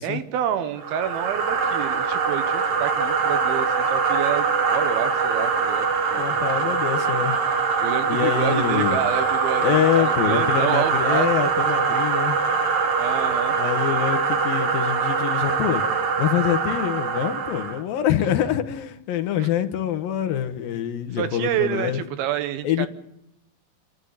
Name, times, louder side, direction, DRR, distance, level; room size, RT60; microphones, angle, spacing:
voice 1, 0.0-6.3 7.8-11.5 13.0-13.6 19.4-19.5 21.1-22.9, right 10 dB, 85° right, 10 dB, 3.1 m, -28 dB
sound 1, 0.8-17.8, right 5 dB, 50° right, 2.3 m, -23 dB
voice 2, 6.2-7.4 8.1-9.0 9.6-12.4 13.5-15.9 16.2-22.0 22.6-22.9, left 10 dB, 80° left, 8 dB, 2.9 m, -25 dB
26.5 x 12.5 x 8.1 m, 0.83 s
omnidirectional pair, 4.2 m